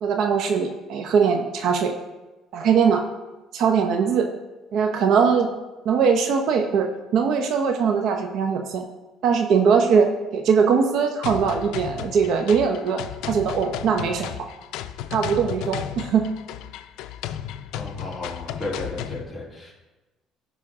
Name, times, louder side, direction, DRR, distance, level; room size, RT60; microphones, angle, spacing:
voice 1, 0.0-1.9 2.5-3.1 3.5-4.3 4.7-5.5 5.8-8.8 9.2-14.5 15.1-16.2, right 6 dB, 65° right, 5 dB, 0.8 m, -21 dB
sound 1, 11.2-19.2, left 11 dB, 80° left, 0.5 m, -34 dB
voice 2, 17.7-19.8, left 2 dB, 5° left, -6 dB, 3.3 m, -34 dB
14.0 x 5.7 x 3.7 m, 1.1 s
cardioid pair, 115°, 0 cm